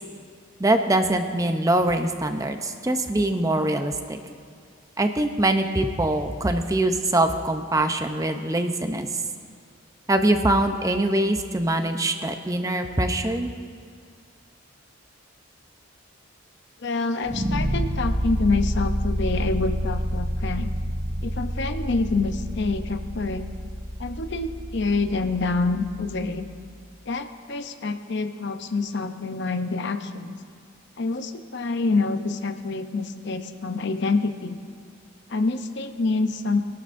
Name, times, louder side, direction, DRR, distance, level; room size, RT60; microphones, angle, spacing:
voice 1, 0.6-4.2 5.0-9.1 10.1-13.5, right 1 dB, 15° right, 6 dB, 0.6 m, -23 dB
voice 2, 16.8-20.7 21.2-23.5 24.0-26.5 27.1-30.4 31.0-34.6 35.3-36.6, left 3 dB, 55° left, 8 dB, 0.7 m, -27 dB
sound 1, 17.2-26.3, equal, 60° right, 1.6 m, -29 dB
23.0 x 12.0 x 2.6 m, 2.2 s
head